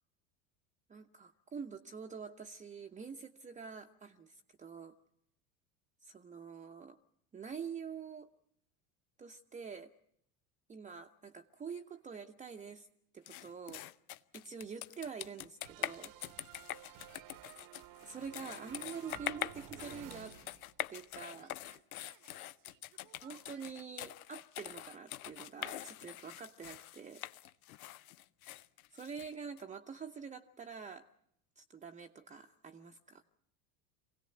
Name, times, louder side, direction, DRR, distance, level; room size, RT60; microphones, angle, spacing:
voice 1, 0.9-5.0 6.0-7.0 7.3-8.3 9.2-9.9 10.7-12.9 13.1-13.8 14.3-16.1 18.0-20.4 20.9-21.5 23.2-27.2 28.9-31.1 31.6-33.2, right 6 dB, 15° right, 4 dB, 0.8 m, -46 dB
sound 1, 13.3-29.6, left 14 dB, 75° left, 0.8 m, -44 dB
sound 2, 15.6-21.1 21.3-23.7, right 13 dB, 50° right, 1.0 m, -54 dB
23.5 x 17.0 x 7.7 m, 0.74 s
hypercardioid pair, 85°, 43 cm